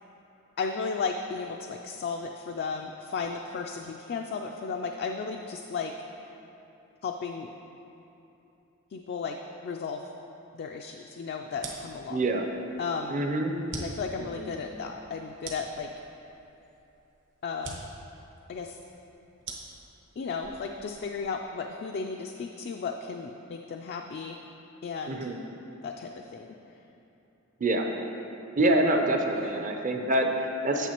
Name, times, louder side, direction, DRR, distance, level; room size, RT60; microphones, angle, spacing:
voice 1, 0.6-5.9 7.0-7.5 8.9-10.0 10.5-12.2 12.8-13.2 13.8-15.9 17.4-17.8 18.5-18.8 20.2-24.4 24.8-25.3 25.8-26.6 29.4-29.6, left 5 dB, 45° left, 2 dB, 0.3 m, -34 dB
sound 1, 11.5-21.4, right 3 dB, 55° right, 0.9 m, -45 dB
voice 2, 12.1-12.5 13.1-13.6 14.2-14.5 25.1-25.4 27.6-28.0 28.6-30.9, right 1 dB, 35° right, 3 dB, 0.6 m, -26 dB
9.0 x 7.6 x 2.9 m, 2.9 s
head